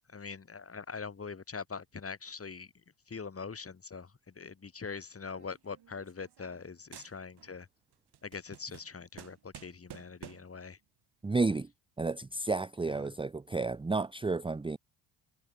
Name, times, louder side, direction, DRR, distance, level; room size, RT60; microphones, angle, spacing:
voice 1, 0.1-2.7 3.1-4.1 4.4-7.7 8.2-10.8 12.9-13.0, left 5 dB, 30° left, 5.0 m, -43 dB
sound 1, 5.3-6.7 6.9-7.6 7.9-10.6, right 11 dB, 55° right, 3.6 m, -52 dB
voice 2, 11.2-11.7 12.0-14.8, right 3 dB, 10° right, 0.8 m, -31 dB
supercardioid pair, 80°, 47 cm